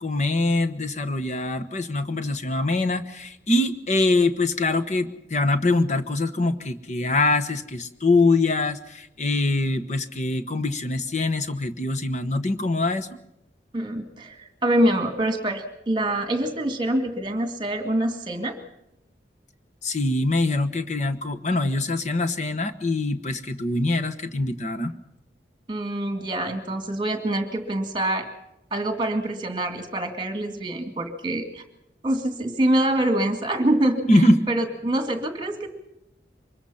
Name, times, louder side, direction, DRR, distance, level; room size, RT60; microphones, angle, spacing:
voice 1, 0.0-13.1 19.8-24.9 34.1-34.4, left 2 dB, 40° left, 10 dB, 1.1 m, -23 dB
voice 2, 13.7-18.6 25.7-28.3 28.7-31.6 32.0-35.7, right 1 dB, 25° right, 6 dB, 2.2 m, -25 dB
24.0 x 21.5 x 5.7 m, 0.83 s
head